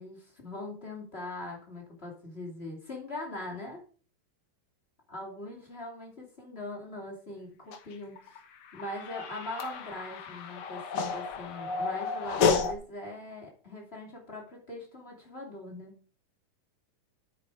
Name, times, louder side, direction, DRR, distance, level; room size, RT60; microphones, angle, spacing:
voice 1, 0.0-3.8 5.1-8.4 8.7-16.0, left 1 dB, 20° left, 0 dB, 2.5 m, -41 dB
sound 1, 7.7-12.7, left 5 dB, 70° left, 1.3 m, -31 dB
8.8 x 8.6 x 4.9 m, 0.40 s
omnidirectional pair, 4.1 m